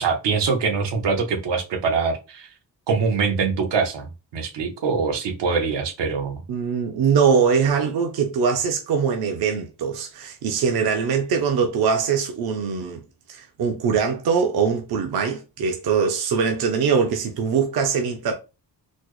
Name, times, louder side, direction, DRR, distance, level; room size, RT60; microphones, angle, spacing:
voice 1, 0.0-2.5 2.9-6.4, right 5 dB, 85° right, 0.9 m, -23 dB
voice 2, 6.5-13.0 13.3-18.3, right 6 dB, 60° right, 0.6 m, -22 dB
4.1 x 2.0 x 3.0 m
wide cardioid pair, 175°, 41 cm